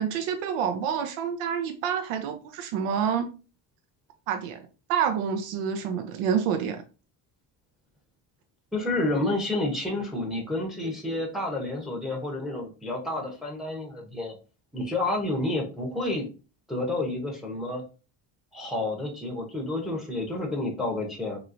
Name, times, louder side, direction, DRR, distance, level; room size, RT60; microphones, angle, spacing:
voice 1, 0.0-3.3 4.3-4.6 4.9-6.8, right 7 dB, 80° right, 0.6 m, -28 dB
voice 2, 8.7-14.4 14.7-16.2 16.7-17.8 18.5-21.4, left 2 dB, ahead, 0.7 m, -30 dB
3.0 x 3.0 x 2.5 m
cardioid pair, 105°, 49 cm